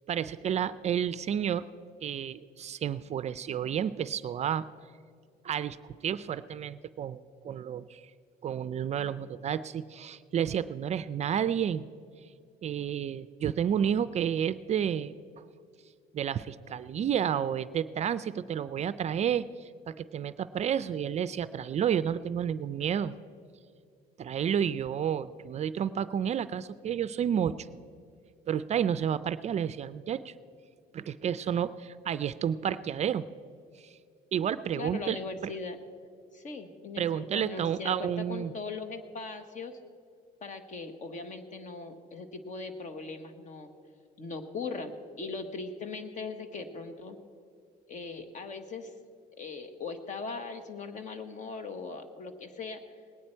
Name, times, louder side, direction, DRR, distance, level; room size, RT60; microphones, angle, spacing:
voice 1, 0.1-1.7 2.0-4.7 5.4-5.8 6.0-8.0 8.4-11.8 12.6-15.1 16.1-23.1 24.2-27.5 28.5-30.3 30.9-33.2 33.8-33.9 34.3-35.2 35.4-35.5 37.0-38.5, right 9 dB, 40° right, 15 dB, 0.4 m, -30 dB
voice 2, 34.7-35.8 36.3-39.8 40.4-43.7 44.2-47.2 47.9-48.9 49.4-52.8, left 4 dB, 45° left, 8 dB, 1.2 m, -39 dB
20.0 x 9.4 x 4.4 m, 2.3 s
cardioid pair, 110°, 17 cm